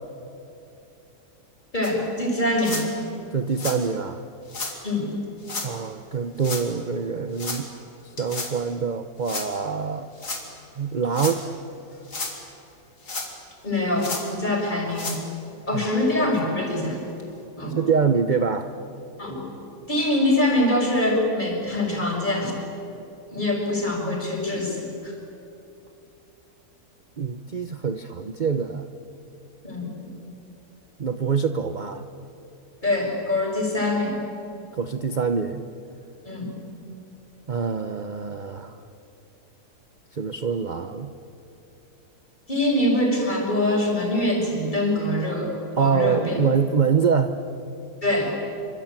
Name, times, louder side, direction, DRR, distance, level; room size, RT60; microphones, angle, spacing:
voice 1, 1.7-2.8 4.8-5.2 13.6-15.2 15.7-17.1 17.6-17.8 19.2-19.5 19.9-22.6 23.3-25.1 29.6-29.9 32.8-34.2 36.2-36.5 42.5-46.4 48.0-48.3, left 1 dB, 30° left, 0 dB, 5.9 m, -24 dB
sound 1, 1.8-1.9 2.6-2.9 3.5-3.8 4.5-4.7 5.4-5.7 6.4-6.7 7.4-7.6 8.2-8.5 9.2-9.5 10.2-10.4 11.0-11.4 11.9-12.4 13.0-13.5 14.0-14.3 14.9-15.2 15.8-15.9 16.3-16.4 17.2-17.3, left 3 dB, 85° left, 4.0 m, -32 dB
voice 2, 3.3-4.2 5.6-7.7 8.0-10.1 10.7-11.4 15.7-15.8 17.8-18.7 27.2-28.9 31.0-32.0 34.7-35.6 37.5-38.8 40.1-41.1 45.8-47.4, right 6 dB, 35° right, 9 dB, 0.9 m, -25 dB
26.5 x 24.5 x 9.0 m, 2.8 s
omnidirectional pair, 1.7 m